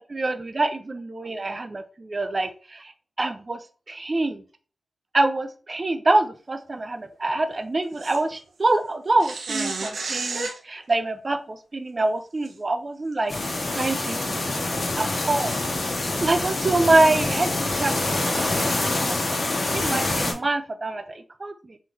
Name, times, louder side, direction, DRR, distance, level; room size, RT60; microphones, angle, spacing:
voice 1, 0.0-2.9 3.2-3.6 3.9-4.4 5.1-15.5 16.2-19.2 19.7-21.8, right 2 dB, 35° right, 9 dB, 0.5 m, -25 dB
sound 1, 8.0-8.2 9.2-10.6 12.4-12.5 13.1-13.2 15.4-15.6, right 3 dB, 80° right, 0.9 m, -31 dB
sound 2, 13.3-20.3, left 2 dB, 55° left, 1.2 m, -26 dB
3.8 x 3.2 x 4.0 m, 0.38 s
wide cardioid pair, 85°, 0 cm